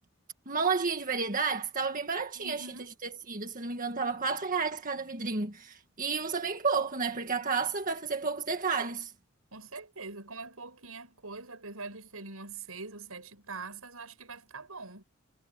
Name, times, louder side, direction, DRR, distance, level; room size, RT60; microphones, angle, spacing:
voice 1, 0.5-2.6 3.3-9.1, right 4 dB, 40° right, 1.7 m, -31 dB
voice 2, 2.3-3.0 9.5-15.0, right 3 dB, 80° right, 6.4 m, -44 dB
head